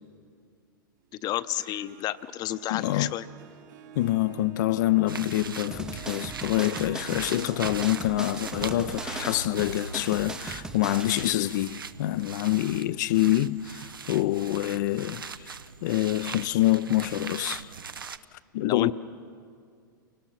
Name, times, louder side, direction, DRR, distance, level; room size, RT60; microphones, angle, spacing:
voice 1, 1.2-3.2 18.6-18.9, left 13 dB, 35° left, 0.8 m, -30 dB
Harp, 1.4-14.3, right 7 dB, 60° right, 2.7 m, -49 dB
voice 2, 2.7-3.2 4.0-15.5 15.8-17.7 18.5-18.9, left 15 dB, 60° left, 0.5 m, -26 dB
sound 1, 5.1-18.2, right 5 dB, 85° right, 0.7 m, -40 dB
sound 2, 5.7-11.3, right 2 dB, 5° right, 0.6 m, -39 dB
29.0 x 18.0 x 5.8 m
hypercardioid pair, 100°, 11 cm